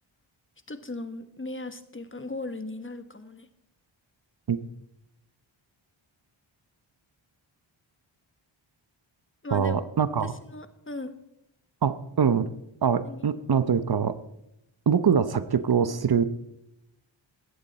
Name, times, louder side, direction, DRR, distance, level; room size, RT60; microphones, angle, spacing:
voice 1, 0.7-3.5 9.4-9.8 10.2-11.1 13.0-13.2, left 2 dB, 25° left, 10 dB, 1.3 m, -37 dB
voice 2, 9.5-10.3 11.8-12.5 12.8-14.1 14.9-16.2, right 7 dB, 50° right, 13 dB, 0.8 m, -23 dB
16.5 x 13.5 x 4.2 m, 0.83 s
cardioid pair, 70°, 48 cm